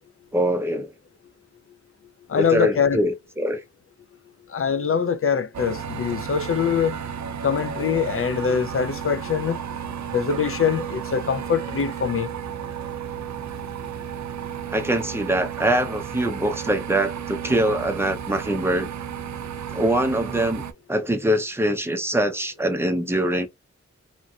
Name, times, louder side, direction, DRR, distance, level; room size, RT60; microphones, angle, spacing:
voice 1, 0.3-0.9 2.3-3.6 14.7-18.9 19.7-20.6 20.9-23.5, right 1 dB, 10° right, 0.6 m, -23 dB
voice 2, 2.3-3.0 4.5-7.0 7.4-9.6 10.1-12.3, left 6 dB, 50° left, 0.4 m, -23 dB
sound 1, 5.5-20.7, right 8 dB, 75° right, 0.5 m, -33 dB
3.0 x 2.6 x 2.3 m
wide cardioid pair, 105°, 29 cm